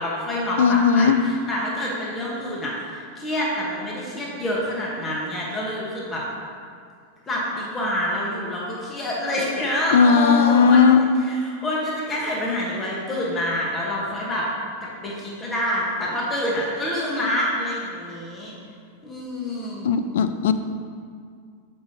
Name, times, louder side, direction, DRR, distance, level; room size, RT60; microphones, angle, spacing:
voice 1, 0.0-6.2 7.3-14.5 14.8-18.6 19.0-19.9, left 1 dB, 20° left, -4 dB, 1.2 m, -27 dB
voice 2, 0.6-1.2 9.9-11.0 19.9-20.5, left 6 dB, 70° left, 10 dB, 0.3 m, -16 dB
6.6 x 5.4 x 2.8 m, 2.2 s
hypercardioid pair, 105°, 0 cm